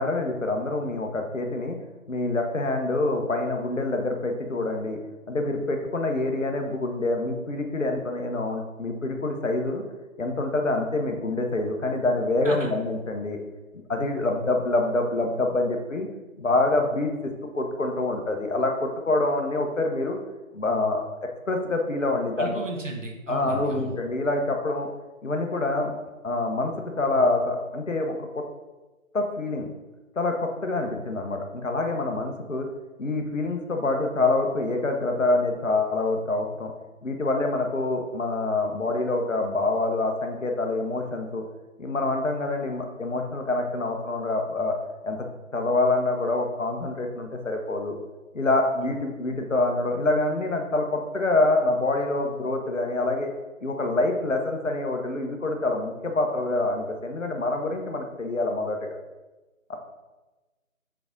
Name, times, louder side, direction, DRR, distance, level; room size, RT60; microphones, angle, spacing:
voice 1, 0.0-1.8 2.1-5.0 5.3-9.8 10.2-13.4 13.9-16.1 16.4-20.2 20.5-21.0 21.5-22.6 23.3-24.9 25.2-25.9 26.2-28.4 29.1-29.7 30.2-32.7 33.0-36.7 37.0-41.4 41.8-44.8 45.0-45.3 45.5-48.0 48.3-53.3 53.6-59.0 59.7-59.8, left 2 dB, 60° left, 4 dB, 1.0 m, -26 dB
voice 2, 22.4-24.0, right 2 dB, 60° right, 1 dB, 1.3 m, -34 dB
6.9 x 3.7 x 3.8 m, 1.1 s
figure-of-eight pair, 160°, 42 cm